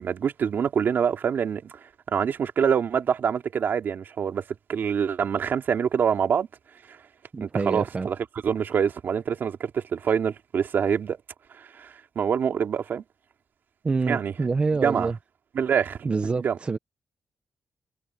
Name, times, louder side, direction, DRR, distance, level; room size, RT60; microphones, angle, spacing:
voice 1, 0.0-4.4 4.7-6.5 6.9-7.0 7.4-8.2 8.4-11.2 11.6-13.0 14.1-14.3 14.8-15.1 15.5-16.1 16.4-16.6, right 7 dB, 65° right, 2.6 m, -25 dB
voice 2, 7.3-8.1 13.8-15.2 16.0-16.8, right 4 dB, 30° right, 1.0 m, -26 dB
cardioid pair, 110°, 4 cm